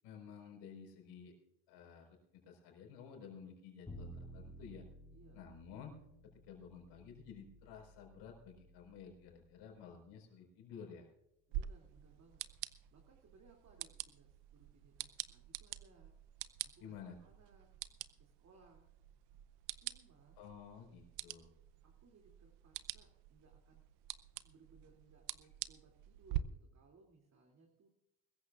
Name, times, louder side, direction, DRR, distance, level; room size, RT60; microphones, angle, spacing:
voice 1, 0.0-1.3 1.7-4.8 5.3-6.0 6.3-11.1 16.8-17.2 20.4-21.5, left 7 dB, 85° left, 1 dB, 4.8 m, -53 dB
Bowed string instrument, 3.9-10.0, right 1 dB, 15° left, 5.1 m, -55 dB
voice 2, 5.1-5.4 11.5-12.4 12.9-17.7 18.2-18.9 19.8-20.4 21.8-23.8 24.4-27.9, right 4 dB, 45° right, 1 dB, 2.8 m, -66 dB
sound 1, 11.5-26.4, right 15 dB, 85° right, 0.8 m, -47 dB
22.5 x 14.5 x 2.5 m, 0.89 s
cardioid pair, 100°, 40 cm